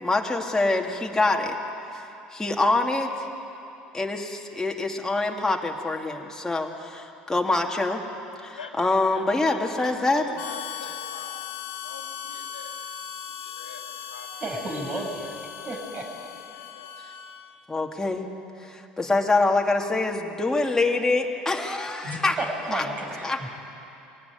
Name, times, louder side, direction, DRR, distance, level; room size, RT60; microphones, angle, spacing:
voice 1, 0.0-1.6 1.9-2.0 2.3-3.3 3.9-8.0 8.4-10.2 17.7-18.3 18.6-22.4 22.7-22.8 23.2-23.4, left 2 dB, 10° left, 1 dB, 2.6 m, -25 dB
voice 2, 8.6-11.3 11.8-13.0 13.3-14.3 14.6-17.0, left 5 dB, 90° left, 1 dB, 2.2 m, -44 dB
Harmonica, 10.4-17.6, left 9 dB, 65° left, 1.9 m, -38 dB
voice 3, 14.4-15.3 15.6-16.1 22.0-23.5, right 1 dB, 35° right, 0 dB, 6.8 m, -32 dB
23.5 x 18.0 x 9.5 m, 2.9 s
hypercardioid pair, 70°, 5 cm